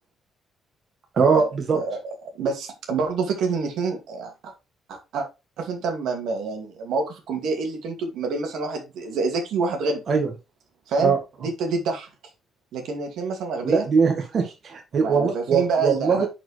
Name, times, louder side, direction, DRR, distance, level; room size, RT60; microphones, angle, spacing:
voice 1, 1.1-1.8 10.1-10.3 11.0-11.2 13.6-16.3, right 5 dB, 50° right, 3 dB, 1.8 m, -21 dB
voice 2, 1.7-4.5 4.9-5.3 5.6-10.0 10.9-12.1 12.7-13.8 15.0-16.3, right 4 dB, 80° right, 3 dB, 2.3 m, -27 dB
10.0 x 4.6 x 3.3 m, 0.26 s
cardioid pair, 90°, 0 cm